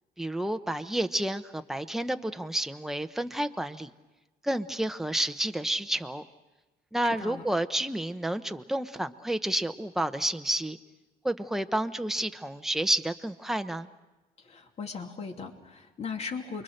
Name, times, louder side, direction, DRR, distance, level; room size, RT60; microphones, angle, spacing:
voice 1, 0.2-3.9 4.4-6.2 6.9-10.8 11.2-13.9, right 1 dB, ahead, 8 dB, 0.9 m, -30 dB
voice 2, 7.0-7.4 14.4-16.6, left 5 dB, 40° left, 3 dB, 2.7 m, -38 dB
29.0 x 23.0 x 6.6 m, 1.1 s
cardioid pair, 110°, 17 cm